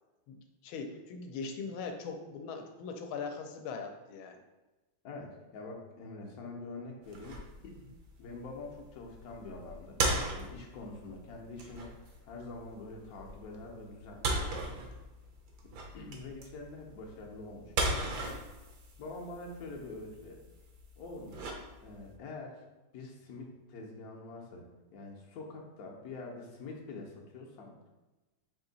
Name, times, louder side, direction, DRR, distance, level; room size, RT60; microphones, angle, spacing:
voice 1, 0.6-4.4, left 5 dB, 80° left, 4 dB, 1.4 m, -40 dB
voice 2, 5.0-7.9 8.2-10.0 10.4-14.7 15.9-18.3 19.0-20.4 21.0-21.5 21.8-22.6 22.9-27.9, left 3 dB, 65° left, 0 dB, 1.0 m, -45 dB
sound 1, 7.0-22.1, right 2 dB, 65° right, 1.1 m, -38 dB
4.4 x 2.7 x 3.9 m, 1.1 s
omnidirectional pair, 2.2 m